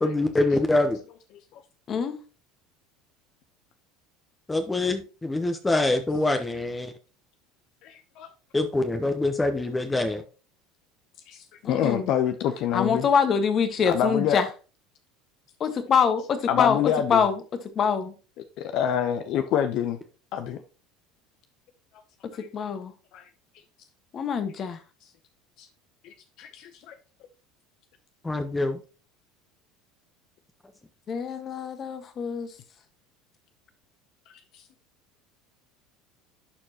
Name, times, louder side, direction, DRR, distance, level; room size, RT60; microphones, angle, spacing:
voice 1, 0.0-1.0 4.5-6.9 8.5-10.2 28.2-28.8, left 2 dB, 15° left, 0.9 m, -25 dB
voice 2, 1.9-2.2 11.6-12.1 12.7-14.5 15.6-16.8 17.1-17.4 17.7-18.1 22.5-22.9 24.1-24.8 31.1-32.5, left 6 dB, 40° left, 1.4 m, -24 dB
voice 3, 7.8-8.3 11.3-13.1 13.9-14.4 16.5-17.2 18.6-20.0 20.3-20.6 22.4-22.5 23.1-23.2 25.6-25.7 26.0-26.9, left 9 dB, 60° left, 0.7 m, -27 dB
11.0 x 4.5 x 2.9 m
hypercardioid pair, 90°, 0 cm